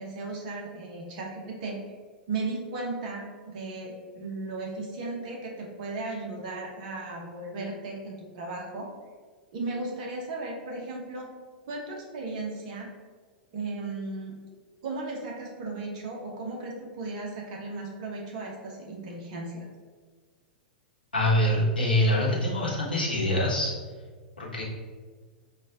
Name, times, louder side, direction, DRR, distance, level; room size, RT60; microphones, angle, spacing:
voice 1, 0.0-1.8 2.3-8.9 9.5-11.3 11.7-12.9 13.5-14.3 14.8-19.6, right 3 dB, 50° right, -1 dB, 1.1 m, -36 dB
voice 2, 21.1-23.7 24.4-24.6, left 1 dB, 80° left, -5 dB, 1.0 m, -24 dB
4.6 x 2.5 x 3.5 m, 1.5 s
figure-of-eight pair, 95°, 5 cm